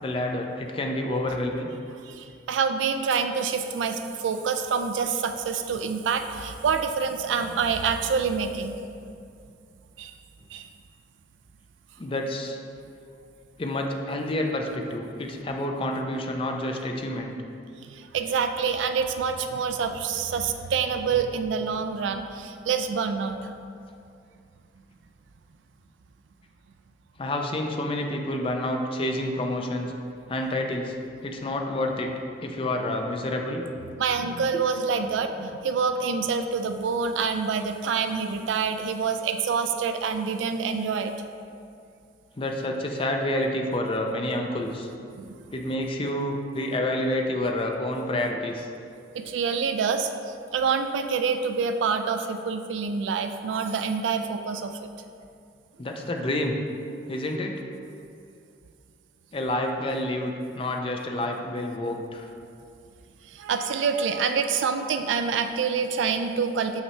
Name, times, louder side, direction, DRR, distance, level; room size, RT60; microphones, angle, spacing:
voice 1, 0.0-1.7 12.0-12.6 13.6-17.4 27.2-29.9 30.3-30.9 31.2-32.1 32.4-33.6 42.4-44.9 45.5-48.7 55.8-56.6 57.1-57.6 59.3-62.3, left 1 dB, 30° left, 3 dB, 0.5 m, -28 dB
voice 2, 2.0-8.8 10.0-10.1 10.5-10.7 17.8-23.5 34.0-41.1 45.2-45.3 49.1-54.9 63.3-66.8, right 5 dB, 80° right, 7 dB, 0.3 m, -27 dB
5.7 x 5.5 x 3.2 m, 2.4 s
head